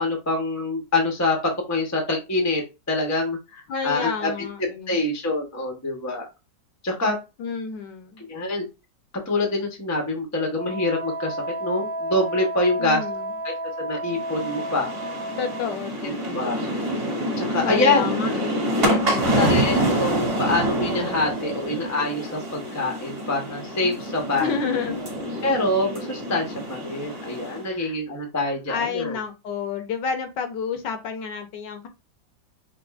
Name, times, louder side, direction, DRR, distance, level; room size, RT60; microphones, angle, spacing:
voice 1, 0.0-1.4 1.7-2.6 2.9-4.3 4.9-6.3 6.8-7.2 8.2-8.7 9.3-13.0 13.4-14.9 16.0-16.6 17.4-18.0 19.0-24.8 25.4-29.2, left 2 dB, 20° left, 2 dB, 0.5 m, -25 dB
voice 2, 3.7-5.0 7.4-8.2 12.8-13.3 15.4-16.7 17.6-18.6 18.9-19.4 24.4-25.0 27.6-28.0 28.7-31.9, left 6 dB, 75° left, 7 dB, 1.4 m, -30 dB
Wind instrument woodwind instrument, 10.6-15.8, right 1 dB, 70° right, 1.2 m, -32 dB
sound 1, 14.1-27.6, right 1 dB, 35° right, 1.4 m, -27 dB
5.1 x 2.6 x 2.4 m, 0.26 s
omnidirectional pair, 2.0 m